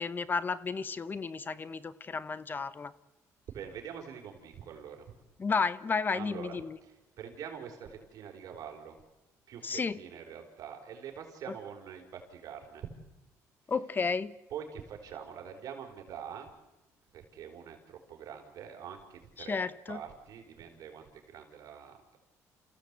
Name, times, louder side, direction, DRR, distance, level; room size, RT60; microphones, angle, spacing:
voice 1, 0.0-2.9 5.4-6.8 9.6-10.0 13.7-14.3 19.4-20.0, left 5 dB, 30° left, 16 dB, 1.0 m, -32 dB
voice 2, 3.5-5.2 6.1-9.0 9.5-12.9 14.5-16.5 17.1-22.2, right 8 dB, 65° right, 3 dB, 4.8 m, -45 dB
29.5 x 16.0 x 8.4 m, 1.0 s
cardioid pair, 100°, 6 cm